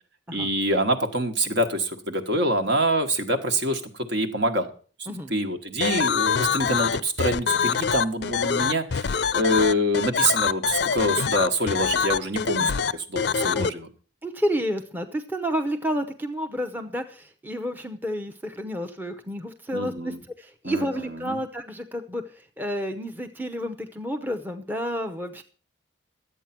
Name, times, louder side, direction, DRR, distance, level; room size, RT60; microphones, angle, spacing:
voice 1, 0.3-3.8 4.1-4.7 5.3-13.9 19.7-20.2 20.6-21.4, right 1 dB, 60° right, 6 dB, 1.5 m, -25 dB
sound 1, 5.8-13.7, left 6 dB, 60° left, 0.5 m, -24 dB
voice 2, 14.2-25.4, equal, 10° right, 6 dB, 0.7 m, -30 dB
12.0 x 8.4 x 5.9 m, 0.40 s
head